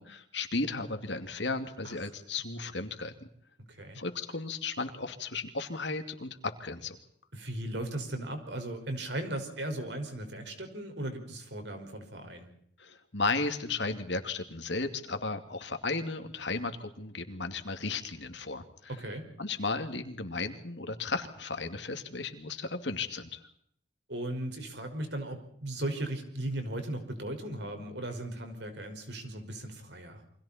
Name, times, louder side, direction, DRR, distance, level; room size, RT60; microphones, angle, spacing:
voice 1, 0.0-3.1 3.9-7.0 12.8-18.9 19.4-23.4, left 3 dB, 70° left, 7 dB, 2.5 m, -34 dB
voice 2, 3.7-4.0 7.3-12.5 18.9-19.3 24.1-30.2, right 1 dB, 65° right, 6 dB, 5.4 m, -37 dB
29.0 x 25.0 x 4.4 m, 0.67 s
head